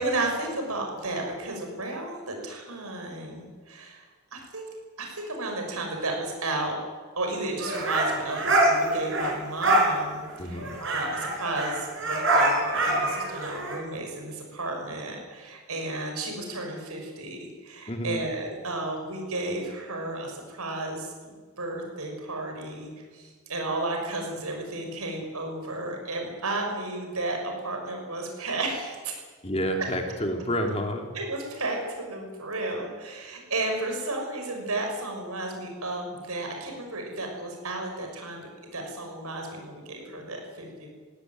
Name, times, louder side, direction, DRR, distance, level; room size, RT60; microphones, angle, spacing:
voice 1, 0.0-4.0 4.3-4.6 5.0-6.8 7.2-29.1 29.8-29.9 31.1-40.9, right 2 dB, 85° right, 2 dB, 6.4 m, -33 dB
sound 1, 7.6-9.3 9.6-9.9 10.2-10.3 10.5-13.8, right 1 dB, 60° right, 6.2 m, -24 dB
voice 2, 10.4-10.8 17.9-18.2 29.4-31.1, equal, 30° left, 3 dB, 2.7 m, -29 dB
20.5 x 17.0 x 9.3 m, 1.5 s
head